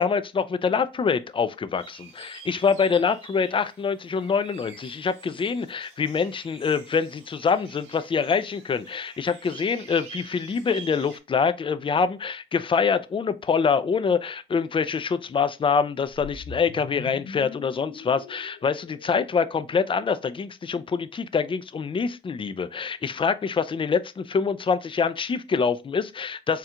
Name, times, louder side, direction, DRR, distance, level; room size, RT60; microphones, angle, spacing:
voice 1, 0.0-26.6, left 5 dB, 25° left, 0.4 m, -25 dB
sound 1, 1.8-11.2, right 6 dB, 85° right, 1.3 m, -47 dB
sound 2, 16.1-20.4, left 5 dB, 60° left, 0.9 m, -43 dB
4.3 x 2.3 x 3.7 m
cardioid pair, 90°, 20 cm